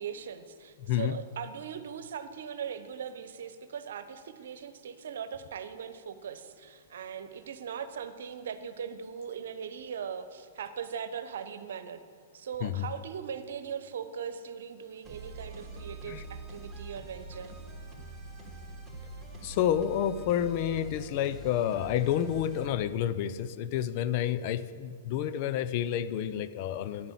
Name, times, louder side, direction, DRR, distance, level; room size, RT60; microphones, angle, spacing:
voice 1, 0.0-12.0 12.3-17.5, right 7 dB, 65° right, 11 dB, 1.1 m, -40 dB
sound 1, 15.0-22.7, right 2 dB, ahead, 3.4 m, -44 dB
voice 2, 19.4-27.1, left 10 dB, 45° left, 13 dB, 0.6 m, -29 dB
10.5 x 10.5 x 8.4 m, 2.1 s
figure-of-eight pair, 110°, 0 cm